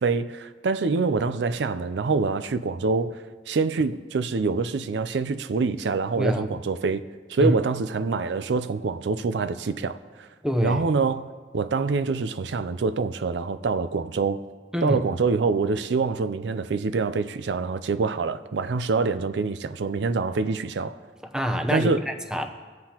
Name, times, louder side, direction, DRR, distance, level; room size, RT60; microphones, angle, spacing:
voice 1, 0.0-7.0 7.3-10.3 10.6-14.4 14.8-21.0 21.7-22.0, right 4 dB, 85° right, 0.4 m, -25 dB
voice 2, 10.4-10.8 14.7-15.0 21.2-22.5, equal, 5° right, 0.7 m, -25 dB
21.0 x 7.7 x 2.9 m
head